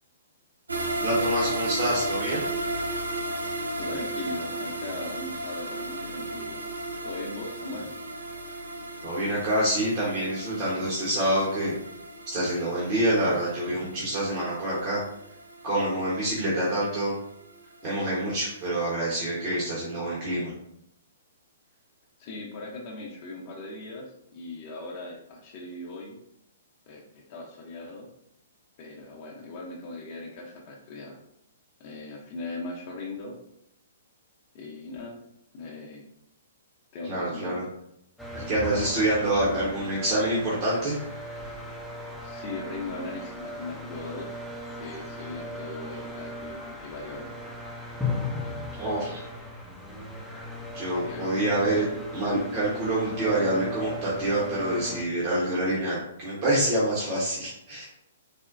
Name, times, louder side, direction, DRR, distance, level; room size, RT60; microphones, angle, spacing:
sound 1, 0.7-17.8 18.1-18.2 18.6-18.7, right 2 dB, 80° right, 0.5 m, -35 dB
voice 1, 1.0-2.5 9.0-11.7 12.3-15.0 15.6-17.1 17.8-20.5 37.1-37.6 38.3-41.0 48.8-49.2 50.7-51.8 52.1-57.9, right 1 dB, 40° right, -7 dB, 1.1 m, -26 dB
voice 2, 3.8-6.6 7.0-7.9 22.2-26.2 26.9-28.1 28.8-31.2 31.8-33.3 34.5-35.2 35.5-36.0 36.9-37.6 42.2-44.3 44.8-47.3 50.9-51.8, left 2 dB, 40° left, -1 dB, 0.7 m, -39 dB
sound 2, 38.2-55.0, left 1 dB, ahead, 0.5 m, -37 dB
4.1 x 2.1 x 2.5 m, 0.76 s
figure-of-eight pair, 120°, 0 cm